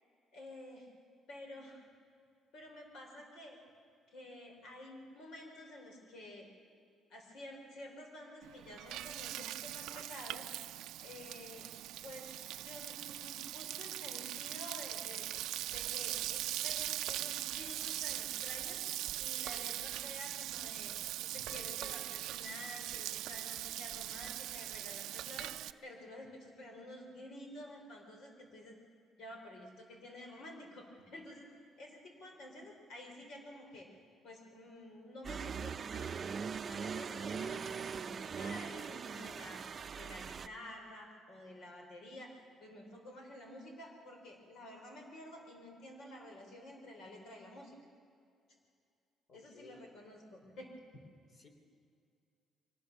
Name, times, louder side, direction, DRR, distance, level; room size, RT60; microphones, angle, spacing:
voice 1, 0.3-0.9 1.3-1.9 2.5-3.6 4.1-6.5 7.1-10.5 11.0-11.7 12.0-12.3 12.6-15.3 15.7-18.8 19.2-28.7 29.2-33.9 34.2-39.7 40.0-47.8 49.3-50.7, left 1 dB, 70° left, 2 dB, 4.9 m, -51 dB
Frying (food), 8.4-25.7, right 14 dB, 90° right, 0.5 m, -41 dB
sound 1, 35.2-40.5, right 6 dB, 40° right, 0.6 m, -41 dB
voice 2, 49.3-49.8 51.3-51.5, left 4 dB, 50° left, 4 dB, 3.4 m, -58 dB
23.5 x 19.0 x 7.1 m, 2.3 s
cardioid pair, 110°, 0 cm